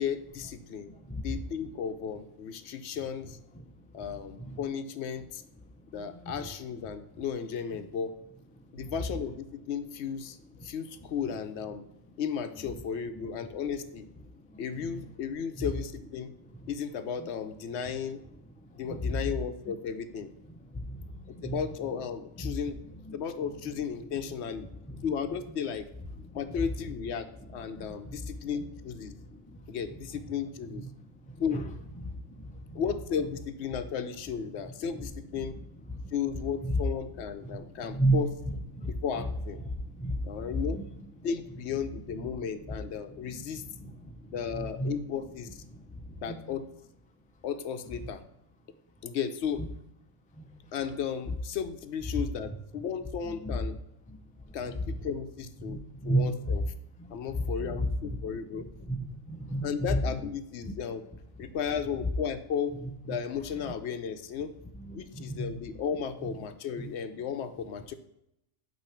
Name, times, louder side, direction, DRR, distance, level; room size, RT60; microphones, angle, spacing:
voice 1, 0.0-0.9 1.2-3.4 3.9-5.4 5.9-8.2 8.7-10.4 10.6-11.9 12.2-14.1 14.6-16.3 16.7-18.2 18.7-20.3 21.3-22.8 23.1-24.7 25.0-25.9 26.3-29.1 29.7-30.9 31.4-31.6 32.7-35.6 36.1-38.3 38.9-39.6 40.2-40.8 41.2-43.6 44.3-45.6 46.2-46.7 47.4-48.2 49.0-49.7 50.7-53.8 54.5-56.6 57.1-58.7 59.6-61.0 61.4-62.7 63.1-64.5 64.9-67.9, left 7 dB, 70° left, 9 dB, 0.9 m, -34 dB
voice 2, 0.9-1.2 4.4-4.6 6.1-6.2 13.2-13.3 14.8-15.0 18.9-19.2 20.7-21.6 24.9-25.0 27.7-28.3 29.2-29.8 31.3-31.6 32.0-32.8 35.9-36.0 36.6-36.8 37.4-37.6 37.9-38.2 38.7-38.9 39.6-40.8 43.2-43.4 43.8-44.9 46.1-46.4 50.4-50.6 53.4-53.6 55.6-56.6 57.0-57.9 58.9-59.0 59.3-60.0 64.9-65.5 66.8-66.9, right 1 dB, 10° left, 5 dB, 0.3 m, -33 dB
8.8 x 3.0 x 5.6 m, 0.83 s
omnidirectional pair, 1.2 m